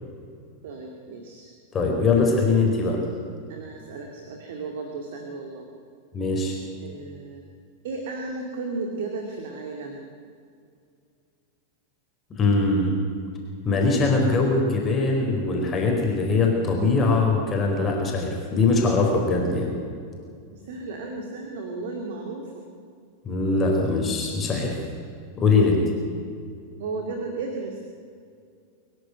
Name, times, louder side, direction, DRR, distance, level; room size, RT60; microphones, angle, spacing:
voice 1, 0.6-1.5 2.3-2.7 3.5-5.7 6.8-7.4 7.8-10.0 20.5-22.6 26.8-27.8, right 3 dB, 55° right, 2 dB, 2.4 m, -34 dB
voice 2, 1.7-3.0 6.1-6.6 12.3-12.9 13.6-19.7 23.2-24.8 25.4-25.8, left 3 dB, 25° left, 0 dB, 4.4 m, -22 dB
24.0 x 11.5 x 9.5 m, 2.3 s
figure-of-eight pair, 90°, 0 cm